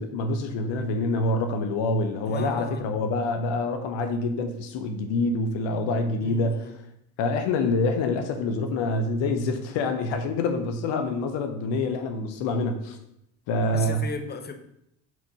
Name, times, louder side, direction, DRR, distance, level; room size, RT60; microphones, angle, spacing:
voice 1, 0.0-6.8 7.2-13.0 13.5-14.1, left 2 dB, 80° left, 6 dB, 0.9 m, -26 dB
voice 2, 2.3-2.9 6.2-6.7 13.7-14.5, left 4 dB, 25° left, 7 dB, 0.8 m, -35 dB
4.6 x 4.2 x 5.4 m, 0.76 s
hypercardioid pair, 60°, 43 cm